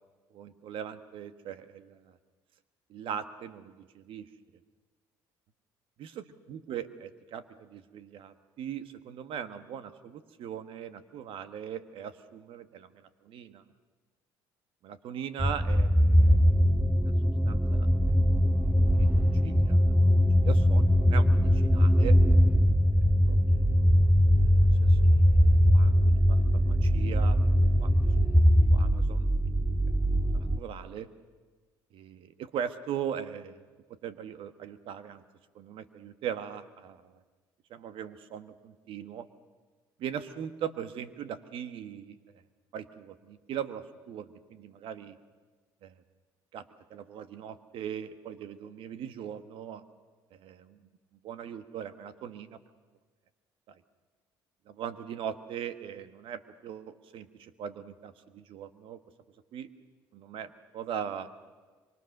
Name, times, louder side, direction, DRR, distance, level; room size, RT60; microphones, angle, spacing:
voice 1, 0.3-2.2 2.9-4.3 6.0-13.6 14.8-16.4 17.4-17.9 19.0-19.8 20.4-22.2 22.9-23.7 24.8-25.4 25.7-27.4 27.8-27.9 28.2-28.4 28.7-29.3 29.7-29.8 30.3-31.1 31.9-33.6 34.0-35.2 35.5-37.1 37.7-39.3 40.0-42.4 42.7-45.2 45.8-45.9 46.5-46.6 46.9-49.8 50.3-50.8 51.2-52.6 53.7-53.8 54.7-59.0 59.5-59.7 60.1-61.3, right 9 dB, 65° right, 11 dB, 1.4 m, -40 dB
sound 1, 15.4-30.6, equal, 5° right, 0.9 m, -22 dB
24.5 x 24.0 x 6.7 m, 1.4 s
supercardioid pair, 70°, 10 cm